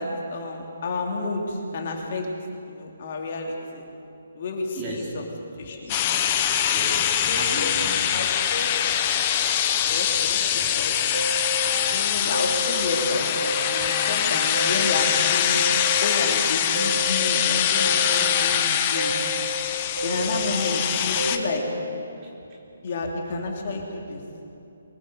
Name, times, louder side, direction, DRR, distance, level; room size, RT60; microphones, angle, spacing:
voice 1, 0.0-2.3 2.7-3.8 4.3-5.3 5.6-6.0 7.3-8.7 9.9-11.0 11.9-15.6 16.0-19.1 20.0-21.7 22.8-24.2, left 3 dB, 35° left, 1 dB, 3.2 m, -30 dB
voice 2, 4.7-5.2 6.7-8.0 9.8-9.9 11.6-12.0 13.8-14.1 20.1-20.4 22.2-22.6, right 1 dB, 20° right, -2 dB, 3.3 m, -37 dB
sound 1, 5.9-21.4, left 9 dB, 20° left, 1.1 m, -23 dB
sound 2, 11.1-13.0 13.3-15.2 15.5-17.4 17.8-19.6 20.0-21.8, right 1 dB, 60° right, 4.6 m, -32 dB
24.0 x 21.0 x 8.1 m, 2.9 s
hypercardioid pair, 175°, 0 cm